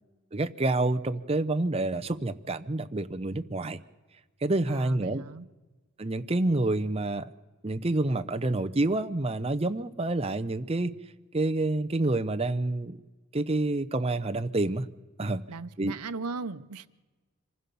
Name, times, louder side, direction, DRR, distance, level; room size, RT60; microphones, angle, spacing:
voice 1, 0.3-3.8 4.4-5.2 6.0-7.3 7.6-10.9 11.3-13.0 13.3-14.9 15.2-15.4 15.8-15.9, right 2 dB, 25° right, 0.7 m, -28 dB
voice 2, 4.7-5.5 15.5-16.9, right 4 dB, 90° right, 0.8 m, -37 dB
26.0 x 15.5 x 7.0 m
head